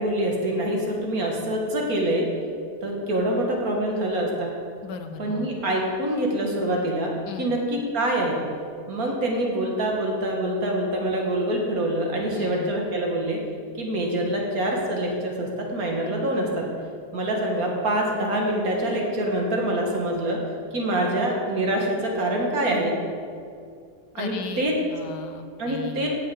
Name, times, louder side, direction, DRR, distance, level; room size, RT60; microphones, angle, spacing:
voice 1, 0.0-2.3 2.8-4.5 5.2-7.1 7.4-8.4 8.9-13.4 13.8-16.7 17.1-20.4 20.7-22.9 24.1-24.8 25.6-26.1, right 1 dB, 60° right, 0 dB, 2.1 m, -25 dB
voice 2, 4.8-5.6 7.3-7.5 12.3-12.8 24.2-26.1, left 6 dB, 85° left, 7 dB, 1.4 m, -37 dB
8.8 x 6.6 x 8.4 m, 2.3 s
omnidirectional pair, 1.8 m